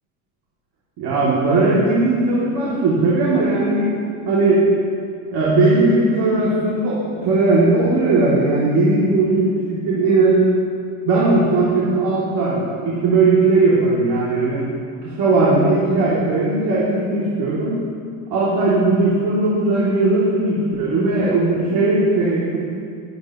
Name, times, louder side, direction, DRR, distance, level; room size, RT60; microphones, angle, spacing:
voice 1, 1.0-3.9 4.2-4.7 5.3-10.5 11.1-14.6 15.0-17.8 18.3-22.6, right 2 dB, 60° right, -7 dB, 3.1 m, -18 dB
21.0 x 8.7 x 3.2 m, 2.4 s
cardioid pair, 125°, 43 cm